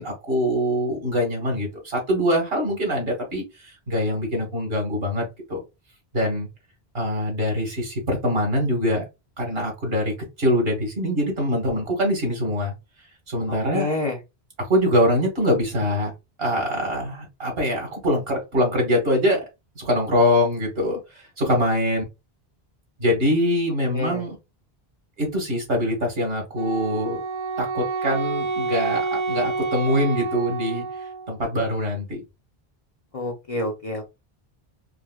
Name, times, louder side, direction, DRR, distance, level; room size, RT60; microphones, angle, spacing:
voice 1, 0.0-5.6 6.1-6.5 6.9-9.0 9.4-12.7 13.3-13.9 14.6-16.1 16.4-19.4 19.7-22.0 23.0-24.4 25.2-27.2 27.6-30.8 31.3-32.2, equal, 65° right, 1 dB, 1.7 m, -23 dB
voice 2, 13.5-14.2 23.9-24.2 33.1-34.0, left 2 dB, 40° left, 1 dB, 0.6 m, -28 dB
Wind instrument woodwind instrument, 26.6-31.4, right 4 dB, 50° right, 0.3 m, -28 dB
4.7 x 2.1 x 2.3 m, 0.23 s
omnidirectional pair, 1.1 m